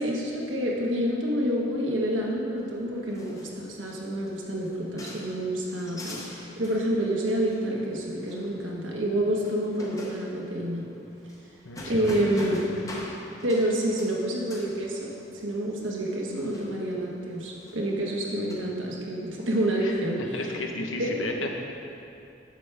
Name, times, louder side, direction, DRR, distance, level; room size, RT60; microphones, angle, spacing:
voice 1, 0.0-10.9 11.9-12.7 13.4-20.4 21.0-21.3, right 1 dB, 80° right, -2 dB, 1.4 m, -28 dB
sound 1, 2.6-18.6, left 1 dB, 15° left, 0.8 m, -45 dB
voice 2, 11.6-12.9 19.8-19.9 20.3-21.5, left 2 dB, 90° left, 2 dB, 0.9 m, -33 dB
10.0 x 7.2 x 3.4 m, 2.7 s
head